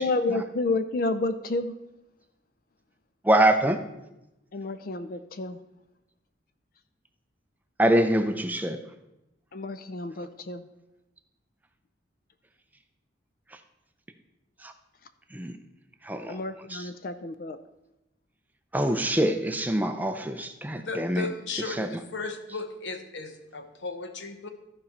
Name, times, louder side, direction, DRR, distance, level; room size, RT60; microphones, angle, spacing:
voice 1, 0.0-1.8 4.5-5.6 9.5-10.7 16.3-17.6, left 2 dB, 50° left, 11 dB, 0.4 m, -30 dB
voice 2, 3.3-3.8 7.8-8.8 15.3-15.5 16.1-16.4 18.7-21.3 21.8-21.9, right 1 dB, 10° right, 7 dB, 0.5 m, -24 dB
voice 3, 20.8-24.5, left 3 dB, 85° left, 7 dB, 1.1 m, -35 dB
14.0 x 5.3 x 4.2 m, 0.93 s
head